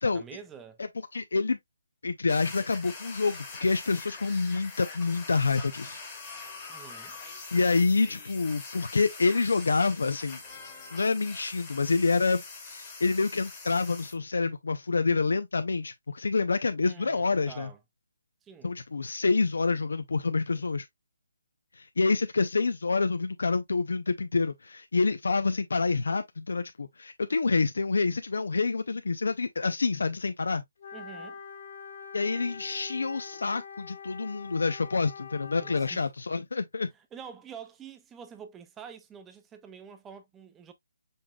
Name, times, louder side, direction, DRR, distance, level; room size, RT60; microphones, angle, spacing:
voice 1, 0.1-0.8 6.7-7.2 16.8-17.8 18.4-18.8 30.9-31.4 35.6-36.0 36.9-40.7, right 7 dB, 10° right, 0.4 m, -47 dB
voice 2, 1.1-1.6 2.0-6.0 7.5-10.4 10.9-17.7 18.6-20.9 21.8-30.6 32.1-36.9, left 4 dB, 80° left, 0.5 m, -27 dB
sound 1, 2.3-14.1, left 4 dB, 10° left, 1.2 m, -44 dB
Wind instrument woodwind instrument, 30.8-36.0, left 6 dB, 45° left, 1.7 m, -44 dB
5.4 x 3.6 x 2.3 m
hypercardioid pair, 175°, 0 cm